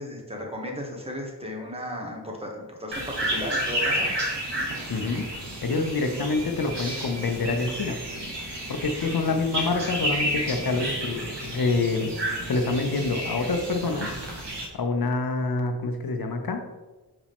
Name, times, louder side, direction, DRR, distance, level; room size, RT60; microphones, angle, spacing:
voice 1, 0.0-4.1, equal, 15° right, -1 dB, 1.3 m, -35 dB
sound 1, 2.9-14.7, right 1 dB, 85° right, 1.5 m, -31 dB
voice 2, 4.9-5.3 5.6-8.0 8.7-12.1 12.5-14.1 14.7-16.6, left 3 dB, 60° left, 6 dB, 0.8 m, -26 dB
5.3 x 4.9 x 3.6 m, 1.2 s
wide cardioid pair, 70°, 41 cm